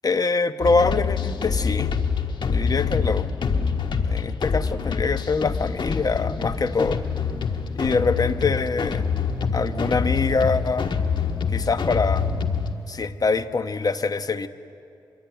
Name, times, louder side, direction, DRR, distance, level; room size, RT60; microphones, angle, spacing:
voice 1, 0.0-1.9 2.5-3.3 3.9-7.0 7.7-9.1 9.5-10.9 11.5-12.3 12.9-14.5, left 4 dB, 50° left, 10 dB, 1.1 m, -24 dB
sound 1, 0.6-12.7, left 6 dB, 70° left, 1.6 m, -26 dB
sound 2, 5.5-13.2, right 2 dB, 40° right, 3.5 m, -39 dB
24.5 x 22.5 x 9.3 m, 2.6 s
cardioid pair, 65°, 8 cm